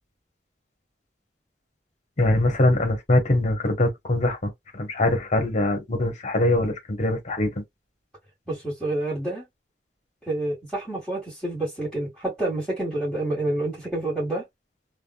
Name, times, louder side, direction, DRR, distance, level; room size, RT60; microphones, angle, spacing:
voice 1, 2.2-7.6, left 1 dB, 40° left, 1.1 m, -23 dB
voice 2, 8.5-9.4 10.3-14.4, right 2 dB, ahead, 1.8 m, -28 dB
3.5 x 2.3 x 2.3 m
head